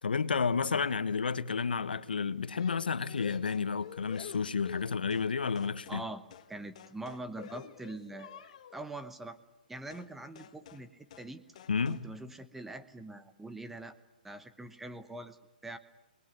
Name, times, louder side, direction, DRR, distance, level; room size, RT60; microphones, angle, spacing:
voice 1, 0.0-6.0 11.7-12.0, left 5 dB, 90° left, 1.4 m, -31 dB
sound 1, 2.6-5.3 5.6-6.1 6.3-6.5 6.8-8.8 9.9-10.1 10.4-10.9 11.1-11.3 11.6-12.1, left 9 dB, 45° left, 1.5 m, -49 dB
voice 2, 5.9-6.2 6.5-9.4 9.7-11.4 11.9-14.0 14.2-15.4 15.6-15.8, right 2 dB, 5° right, 1.0 m, -43 dB
27.5 x 21.0 x 9.5 m
hypercardioid pair, 155°, 5 cm